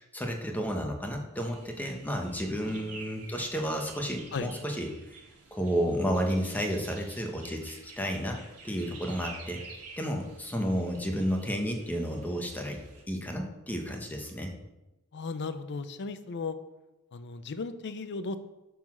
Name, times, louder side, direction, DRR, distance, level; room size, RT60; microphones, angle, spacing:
voice 1, 0.0-4.9 5.5-8.4 8.6-9.6 10.0-12.8 13.1-14.5, equal, 10° left, 2 dB, 0.9 m, -31 dB
sound 1, 1.3-13.0, right 4 dB, 80° right, 1.6 m, -50 dB
voice 2, 2.6-3.0 4.3-4.5 15.1-16.6 17.1-18.4, left 4 dB, 50° left, 11 dB, 0.5 m, -36 dB
9.1 x 3.9 x 6.1 m, 1.0 s
head